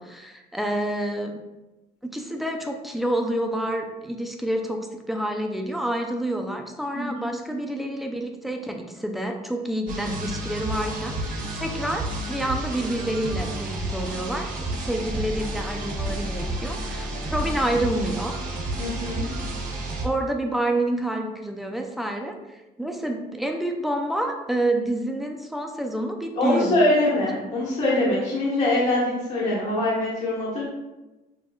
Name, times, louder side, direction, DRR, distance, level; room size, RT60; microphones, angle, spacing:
voice 1, 0.0-1.4 2.0-18.4 20.0-22.4 22.8-26.8, right 1 dB, ahead, 3 dB, 0.4 m, -28 dB
voice 2, 6.9-7.3 18.8-19.3 26.3-30.6, left 1 dB, 45° left, -8 dB, 1.3 m, -23 dB
sound 1, 9.9-20.1, right 1 dB, 50° right, 1.0 m, -31 dB
6.1 x 2.3 x 2.3 m, 1.0 s
cardioid pair, 110°, 17 cm